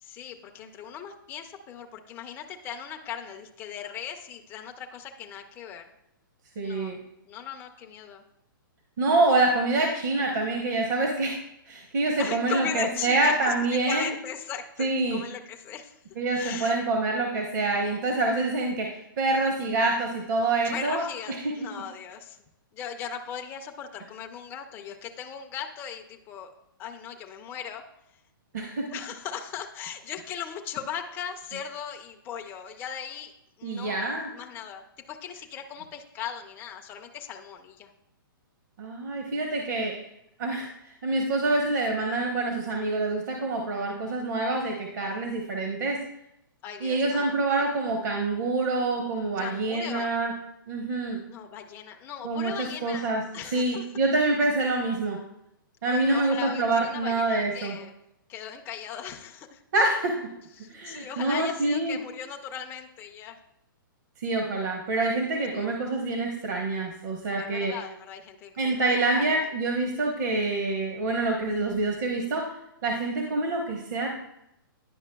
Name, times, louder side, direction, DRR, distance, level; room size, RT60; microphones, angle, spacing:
voice 1, 0.0-5.9 6.6-7.0 7.3-8.2 12.2-13.5 13.9-16.0 16.3-16.8 20.6-22.4 22.7-26.5 26.8-27.8 28.9-33.3 33.6-37.9 46.6-47.5 49.4-50.1 51.3-53.9 55.8-58.0 58.3-59.6 60.6-63.4 65.5-65.7 67.4-68.8 69.1-69.4, left 8 dB, 15° left, 3 dB, 0.4 m, -38 dB
voice 2, 6.6-7.0 9.0-11.4 11.7-14.1 14.8-15.2 16.2-21.0 21.4-21.5 28.5-28.8 33.6-34.3 38.8-39.9 40.4-46.0 46.8-50.3 50.7-51.2 52.2-53.2 53.5-55.2 55.8-57.7 59.7-60.2 60.7-62.0 64.2-67.7 68.6-72.5 72.8-74.2, right 2 dB, 55° right, 1 dB, 0.9 m, -26 dB
10.0 x 5.4 x 2.2 m, 0.83 s
hypercardioid pair, 155°, 12 cm